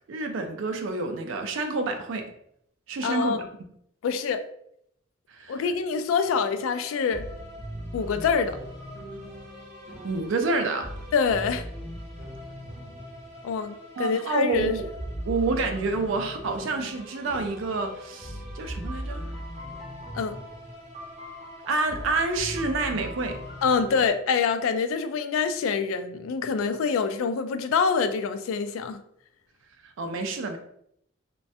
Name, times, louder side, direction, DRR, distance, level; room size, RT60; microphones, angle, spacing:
voice 1, 0.1-2.3 2.9-3.5 5.3-5.6 10.0-10.9 14.0-14.8 15.3-19.2 21.7-23.4 29.8-30.6, right 3 dB, 70° right, 5 dB, 0.4 m, -28 dB
voice 2, 3.0-3.4 4.0-4.4 5.5-7.3 7.9-8.6 11.1-11.6 13.4-14.7 20.1-20.4 23.6-29.0, left 5 dB, 80° left, 9 dB, 0.3 m, -25 dB
sound 1, 6.2-24.1, equal, 35° right, 0.8 m, -39 dB
3.1 x 2.2 x 2.6 m, 0.72 s
head